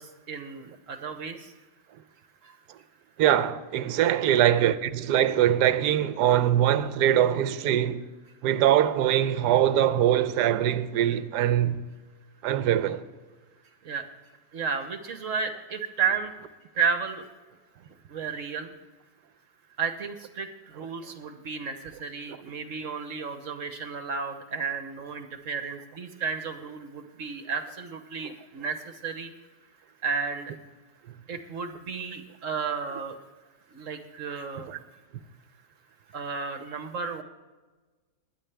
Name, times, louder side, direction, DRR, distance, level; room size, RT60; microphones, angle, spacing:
voice 1, 0.0-1.5 2.4-2.6 13.8-14.0 14.5-16.3 16.7-17.3 18.1-18.7 19.8-29.3 30.0-30.5 31.3-33.2 33.7-34.8 36.1-37.2, right 5 dB, 55° right, 1.2 m, -33 dB
voice 2, 3.2-8.0 8.4-11.9 12.4-13.0 34.7-34.8, right 11 dB, 80° right, 1.2 m, -23 dB
21.0 x 10.0 x 3.4 m
omnidirectional pair, 1.8 m